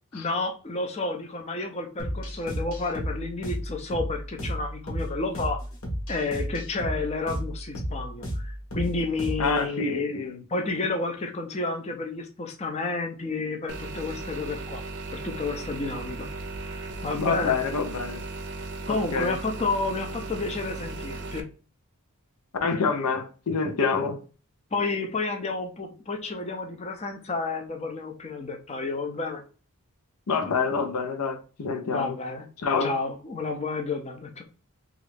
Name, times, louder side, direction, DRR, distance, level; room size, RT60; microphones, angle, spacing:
voice 1, 0.1-5.6 6.1-10.2 10.5-14.8 15.1-16.3 16.7-17.6 18.9-21.5 24.7-29.4 31.8-32.5 32.8-34.4, left 3 dB, 30° left, 0.5 m, -31 dB
sound 1, 2.0-9.6, equal, 65° left, 1.0 m, -33 dB
voice 2, 9.4-10.4 17.2-18.2 18.9-19.4 22.6-24.2 30.3-32.2 32.6-33.0, left 5 dB, 90° left, 0.6 m, -27 dB
sound 2, 13.7-21.4, right 2 dB, 50° right, 0.5 m, -36 dB
3.1 x 2.4 x 3.2 m
head